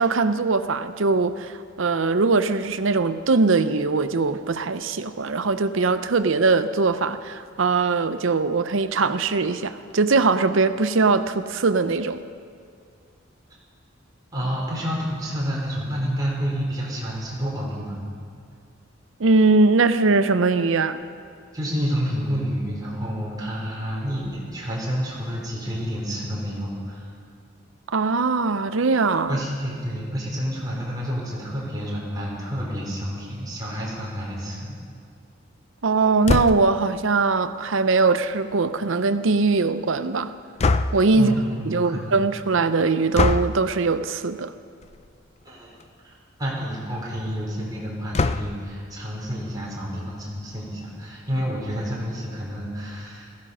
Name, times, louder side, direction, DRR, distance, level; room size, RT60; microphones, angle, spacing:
voice 1, 0.0-12.2 19.2-21.0 27.9-29.4 35.8-40.3 40.9-41.3 41.6-44.5, right 3 dB, 70° right, 12 dB, 0.7 m, -21 dB
voice 2, 14.3-18.0 21.5-27.1 29.3-34.8 41.1-42.2 45.4-45.7 46.0-46.1 46.4-53.3, equal, 20° right, -4 dB, 3.8 m, -29 dB
sound 1, 36.2-36.8 40.6-41.2 43.1-43.6 44.8-45.1 45.5-45.6 45.8-45.9 48.1-48.7, left 3 dB, 30° left, 0.4 m, -23 dB
16.0 x 15.0 x 5.6 m, 2.3 s
head